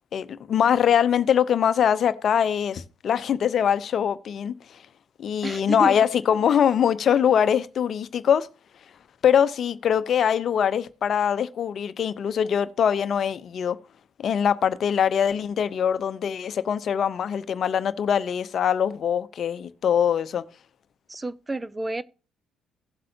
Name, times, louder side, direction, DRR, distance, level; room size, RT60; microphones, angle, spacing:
voice 1, 0.1-4.8 5.2-8.5 9.2-13.8 14.2-20.4, left 8 dB, 55° left, 0.7 m, -23 dB
voice 2, 5.4-5.9 21.1-22.0, right 2 dB, 20° right, 0.6 m, -30 dB
16.5 x 7.6 x 2.8 m
hypercardioid pair, 55°, 0 cm